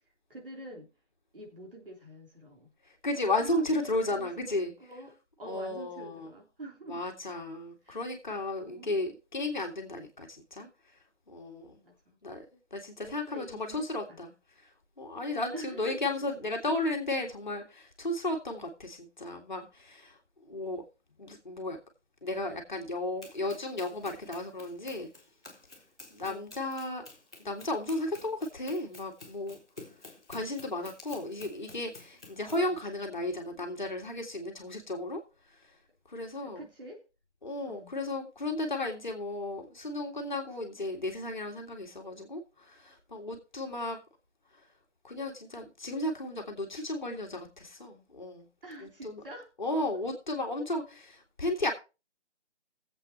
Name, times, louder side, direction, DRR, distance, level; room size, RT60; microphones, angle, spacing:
voice 1, 0.3-0.9 1.3-2.7 3.4-7.0 7.8-8.0 8.6-8.9 11.8-12.2 13.0-14.2 15.5-16.0 16.6-16.7 26.3-26.5 32.5-32.8 36.4-37.0 37.7-38.0 48.6-49.5, right 1 dB, 50° right, 0 dB, 3.3 m, -46 dB
voice 2, 3.0-4.7 5.4-6.3 6.9-10.7 11.3-11.8 12.2-12.4 12.7-14.3 15.0-20.2 20.4-20.8 21.2-21.8 22.2-25.1 26.1-27.0 27.4-29.6 30.3-35.2 36.1-36.6 37.4-44.0 45.0-48.5 48.8-49.2 49.6-51.7, left 2 dB, 40° left, 2 dB, 2.0 m, -34 dB
Run, 23.2-32.7, left 2 dB, 5° left, 1.2 m, -51 dB
20.0 x 7.9 x 2.9 m, 0.30 s
figure-of-eight pair, 180°, 35 cm